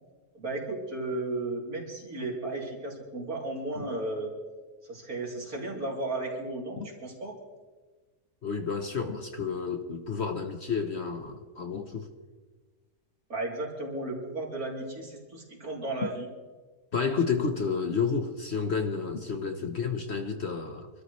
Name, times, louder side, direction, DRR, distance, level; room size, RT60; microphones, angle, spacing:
voice 1, 0.3-4.3 4.9-7.4 13.3-16.3, right 2 dB, 60° right, -2 dB, 3.6 m, -34 dB
voice 2, 8.4-12.1 16.9-20.9, left 5 dB, 45° left, 5 dB, 1.1 m, -30 dB
25.5 x 13.0 x 3.2 m, 1.3 s
omnidirectional pair, 1.7 m